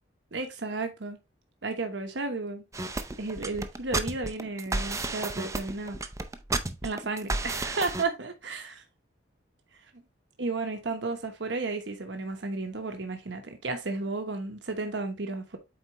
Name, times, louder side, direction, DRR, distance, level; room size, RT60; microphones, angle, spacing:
voice 1, 0.3-1.2 1.6-2.6 3.2-6.0 6.8-8.8 10.4-15.6, right 3 dB, 70° right, 1.1 m, -33 dB
sound 1, 2.7-8.0, right 2 dB, 15° right, 0.6 m, -32 dB
8.0 x 4.3 x 3.0 m
head